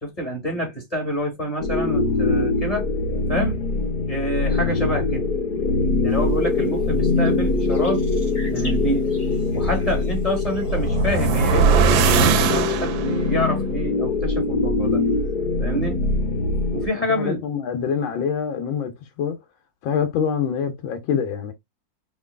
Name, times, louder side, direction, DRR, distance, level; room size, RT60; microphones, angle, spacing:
voice 1, 0.0-2.9 3.3-3.6 4.1-5.3 6.0-8.0 8.5-9.1 9.5-15.0 15.6-16.0 16.7-17.4, equal, 20° left, 2.2 m, -27 dB
sound 1, 1.6-16.9, left 3 dB, 60° left, 1.4 m, -23 dB
sound 2, 6.1-11.3, left 1 dB, 35° left, 2.7 m, -45 dB
sound 3, 10.5-13.3, right 6 dB, 85° right, 1.4 m, -20 dB
voice 2, 16.9-19.4 19.8-21.5, left 7 dB, 85° left, 1.7 m, -26 dB
5.0 x 3.1 x 2.2 m
omnidirectional pair, 2.1 m